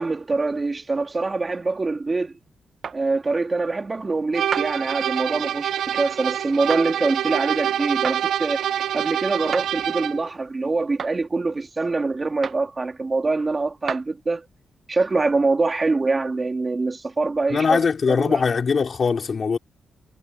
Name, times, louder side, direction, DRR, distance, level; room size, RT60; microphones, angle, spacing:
voice 1, 0.0-2.4 2.9-8.6 8.9-14.5 14.9-17.8 18.1-18.4, right 3 dB, 25° right, 2.7 m, -24 dB
sound 1, 2.8-3.0 4.5-4.7 6.7-6.9 8.0-8.2 9.5-9.7 11.0-11.2 12.4-12.7 13.9-14.1, right 7 dB, 50° right, 0.9 m, -30 dB
sound 2, 4.3-10.3, right 10 dB, 80° right, 0.5 m, -26 dB
voice 2, 17.5-19.6, left 5 dB, 40° left, 3.2 m, -21 dB
wide cardioid pair, 135°, 0 cm